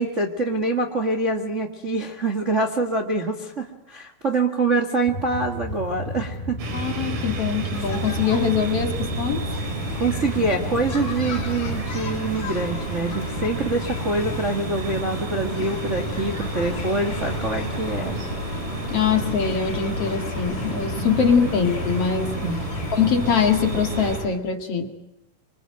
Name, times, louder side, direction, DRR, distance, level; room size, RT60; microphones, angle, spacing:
voice 1, 0.0-6.6 10.0-18.3 21.0-21.2 22.4-22.6, right 2 dB, 30° right, 4 dB, 1.4 m, -25 dB
sound 1, 5.1-11.8, left 1 dB, 10° left, 3.8 m, -33 dB
sound 2, 6.6-24.2, right 3 dB, 75° right, 5.3 m, -31 dB
voice 2, 6.7-9.5 18.9-22.4 22.9-24.9, left 6 dB, 45° left, 5 dB, 2.6 m, -23 dB
sound 3, 7.7-24.3, left 5 dB, 65° left, 5.1 m, -34 dB
26.5 x 24.5 x 9.0 m, 0.84 s
omnidirectional pair, 4.2 m